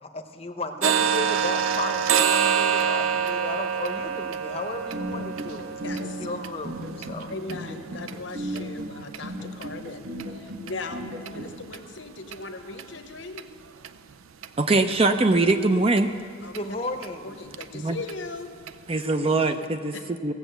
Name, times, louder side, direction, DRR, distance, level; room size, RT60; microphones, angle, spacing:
voice 1, 0.0-7.3 16.5-17.3, left 2 dB, 30° left, 6 dB, 0.8 m, -34 dB
sound 1, 0.8-8.6 9.1-9.2 9.6-9.8 10.2-10.3 10.7-10.8 11.3-11.4 11.7-11.8 12.3-12.4 12.8-12.9 13.4-13.5 13.8-13.9 14.4-14.5 14.9-15.0 15.5-15.6 16.0-16.1 16.5-16.6 17.0-17.1 17.5-17.6 18.1-18.2 18.7-18.8, right 7 dB, 85° right, 0.5 m, -27 dB
sound 2, 4.7-11.5, right 1 dB, 65° right, 1.8 m, -35 dB
voice 2, 5.8-6.4 7.3-13.5 16.4-16.6 17.2-18.6 19.9-20.1, left 3 dB, 60° left, 8 dB, 0.9 m, -38 dB
voice 3, 14.6-16.1 17.7-18.0 18.9-19.9 20.2-20.3, right 2 dB, 30° right, 8 dB, 0.5 m, -22 dB
16.5 x 7.1 x 7.9 m, 2.3 s
head